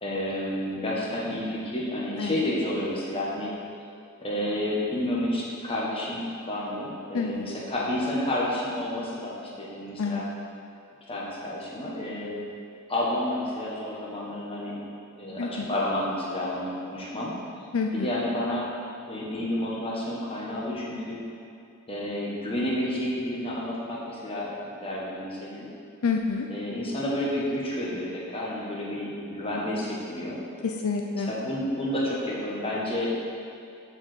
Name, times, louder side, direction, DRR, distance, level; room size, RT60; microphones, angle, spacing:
voice 1, 0.0-3.5 4.2-10.2 11.1-12.4 12.9-14.8 15.2-17.3 17.9-18.7 19.1-21.2 21.9-25.7 26.5-30.4 31.3-33.1, left 1 dB, 25° left, -5 dB, 1.5 m, -30 dB
voice 2, 7.1-7.5 10.0-10.3 15.4-15.7 17.7-18.1 26.0-26.5 30.6-31.3, left 4 dB, 75° left, 2 dB, 0.5 m, -28 dB
7.1 x 4.9 x 6.7 m, 2.6 s
head